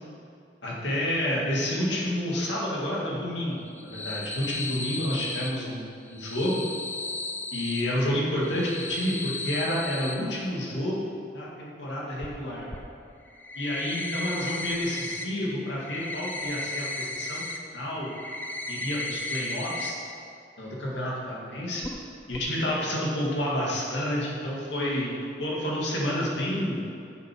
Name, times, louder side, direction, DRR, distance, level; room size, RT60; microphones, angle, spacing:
voice 1, 0.6-3.7 3.9-6.6 7.5-11.0 11.3-12.7 13.5-17.5 17.7-18.1 18.7-20.0 20.6-21.9 22.3-26.8, left 1 dB, 80° left, -5 dB, 2.4 m, -29 dB
sound 1, 3.7-5.5 6.1-7.8 8.4-10.1 12.2-12.3 12.7-12.8 13.2-15.2 15.5-17.6 17.9-19.9 20.2-20.3 20.7-20.8 21.8-22.0 22.3-22.4, left 2 dB, 10° left, 0.6 m, -35 dB
11.0 x 7.0 x 4.7 m, 2.5 s
head